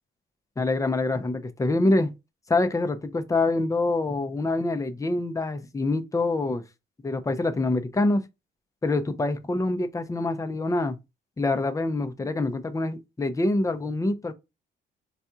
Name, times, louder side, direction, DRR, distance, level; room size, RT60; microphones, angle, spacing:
voice 1, 0.6-2.1 2.5-6.6 7.0-8.2 8.8-11.0 11.4-14.3, left 2 dB, 15° left, 0.6 m, -25 dB
4.1 x 2.3 x 2.7 m
cardioid pair, 90°, 20 cm